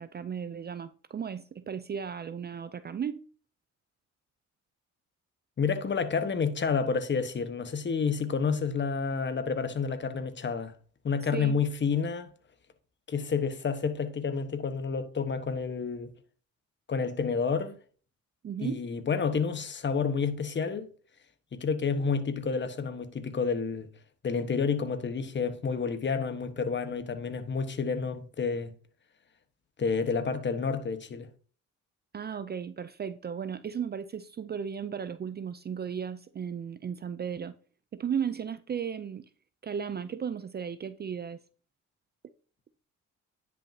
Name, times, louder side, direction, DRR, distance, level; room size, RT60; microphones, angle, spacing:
voice 1, 0.0-3.2 11.3-11.6 18.4-18.9 32.1-37.6 37.9-39.3 39.6-41.4, right 7 dB, 35° right, 0.5 m, -35 dB
voice 2, 5.6-10.7 11.0-12.3 13.1-16.1 16.9-17.8 18.6-20.9 21.5-23.9 24.2-28.7 29.8-31.3, left 5 dB, 40° left, 1.2 m, -29 dB
10.0 x 6.0 x 2.8 m
cardioid pair, 90°, 30 cm